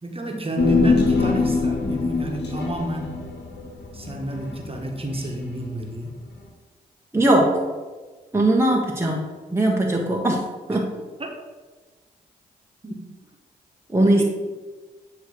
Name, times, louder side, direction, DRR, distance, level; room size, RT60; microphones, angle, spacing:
voice 1, 0.0-3.2 3.9-6.1 10.7-10.8 11.2-11.3 12.8-12.9 14.0-14.2, right 1 dB, 30° right, 2 dB, 1.5 m, -29 dB
Human voice, 0.6-5.2 5.5-5.6, left 4 dB, 70° left, 1.4 m, -23 dB
voice 2, 7.1-7.6 8.3-10.4 10.7-10.9 13.9-14.2, right 1 dB, 15° right, -2 dB, 1.2 m, -20 dB
9.2 x 3.2 x 5.0 m, 1.3 s
supercardioid pair, 45°, 18 cm